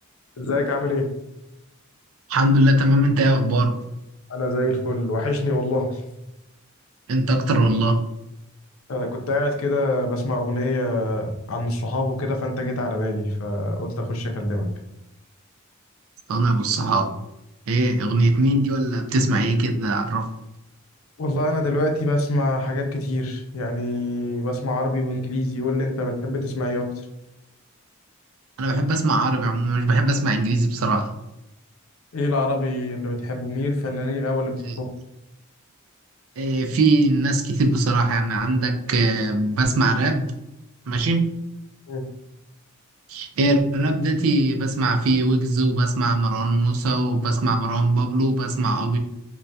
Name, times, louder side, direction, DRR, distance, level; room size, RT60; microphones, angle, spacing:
voice 1, 0.4-1.1 4.3-6.0 8.9-14.7 21.2-26.9 32.1-34.9 41.9-42.0, left 1 dB, 90° left, 3 dB, 0.6 m, -25 dB
voice 2, 2.3-3.8 7.1-8.0 16.3-17.1 17.7-20.3 28.6-31.1 34.6-34.8 36.4-40.3 40.9-41.3 43.1-49.0, right 2 dB, 90° right, 5 dB, 0.4 m, -21 dB
2.6 x 2.2 x 3.3 m, 0.91 s
head